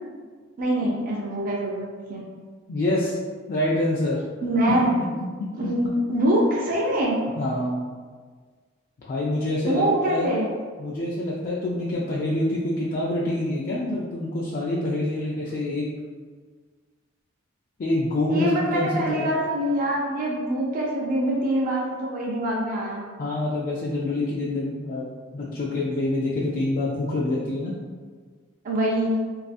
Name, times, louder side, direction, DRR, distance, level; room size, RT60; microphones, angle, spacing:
voice 1, 0.6-2.2 4.4-4.9 5.6-7.2 9.6-10.5 18.3-23.0 28.6-29.2, right 1 dB, 45° right, -3 dB, 0.4 m, -24 dB
voice 2, 2.7-3.1 3.5-4.2 7.4-7.8 9.0-10.3 10.8-15.9 17.8-19.3 23.2-25.1 25.3-27.7, left 1 dB, 45° left, -5 dB, 0.3 m, -26 dB
2.4 x 2.3 x 2.5 m, 1.5 s
head